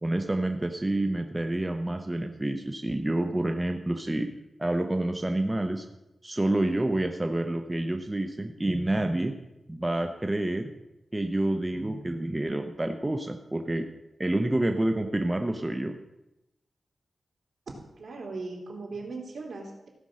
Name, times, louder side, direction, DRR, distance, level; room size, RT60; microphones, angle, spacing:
voice 1, 0.0-4.3 4.6-5.9 6.2-9.3 9.7-10.7 11.1-13.9 14.2-15.9, right 1 dB, 15° right, 5 dB, 0.7 m, -28 dB
voice 2, 18.0-19.9, right 3 dB, 65° right, 0 dB, 2.8 m, -38 dB
15.5 x 5.3 x 6.3 m, 0.92 s
wide cardioid pair, 100°, 0 cm